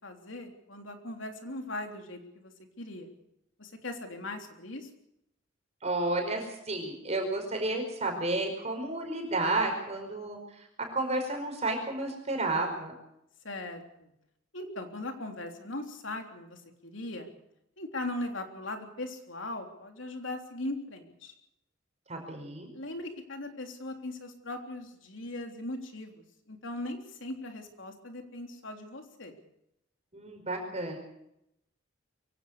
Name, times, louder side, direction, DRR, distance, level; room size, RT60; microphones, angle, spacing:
voice 1, 0.0-2.5 2.8-3.1 3.6-4.9 13.4-14.1 14.5-17.3 17.8-21.3 22.7-29.4, left 2 dB, 70° left, 4 dB, 3.5 m, -39 dB
voice 2, 5.8-12.9 22.1-22.7 30.1-31.0, right 2 dB, 35° right, 2 dB, 5.1 m, -32 dB
23.5 x 17.0 x 6.8 m, 0.80 s
head